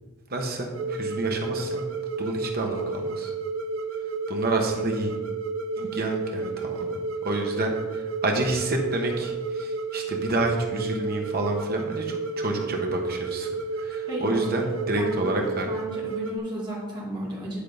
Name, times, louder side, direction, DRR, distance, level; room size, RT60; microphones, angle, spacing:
voice 1, 0.3-1.8 2.2-3.3 4.3-5.1 5.8-6.9 7.2-7.8 8.2-13.5 13.8-15.7, right 2 dB, 50° right, 2 dB, 1.2 m, -29 dB
sound 1, 0.7-16.4, right 3 dB, 80° right, 0.8 m, -31 dB
voice 2, 14.1-14.6 15.0-15.3 15.7-17.6, right 1 dB, 20° right, -6 dB, 2.4 m, -34 dB
10.0 x 3.7 x 5.2 m, 1.2 s
head